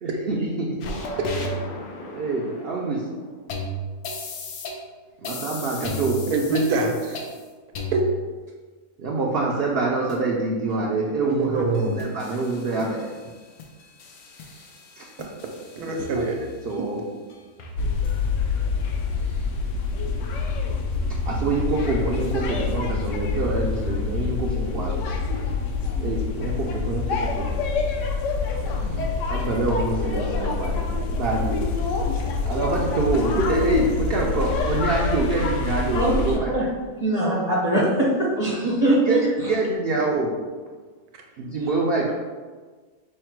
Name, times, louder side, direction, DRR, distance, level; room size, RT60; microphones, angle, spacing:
voice 1, 0.0-1.1 2.1-3.1 5.2-6.2 9.0-13.1 15.0-15.1 15.8-16.3 16.6-17.0 21.2-25.0 26.0-27.6 29.3-31.6 32.5-36.5 39.0-40.4 41.4-42.1, right 3 dB, 65° right, -3 dB, 0.6 m, -26 dB
sound 1, 0.8-4.8 5.2-7.4 7.7-8.3 9.5-9.6 10.1-10.2 10.7-10.8 11.3-11.4 11.7-13.3 13.6-16.8 17.3-17.4 17.6-18.2 18.6-18.9, equal, 85° left, 1.2 m, -35 dB
voice 2, 6.3-7.2 7.9-8.0 11.2-12.0 15.8-16.4 28.8-29.1, right 3 dB, 90° right, 1 dB, 1.2 m, -24 dB
sound 2, 17.8-36.4, left 4 dB, 65° left, 0.8 m, -26 dB
voice 3, 37.0-39.2, right 1 dB, 35° left, -6 dB, 0.7 m, -21 dB
5.5 x 2.1 x 4.4 m, 1.4 s
omnidirectional pair, 1.6 m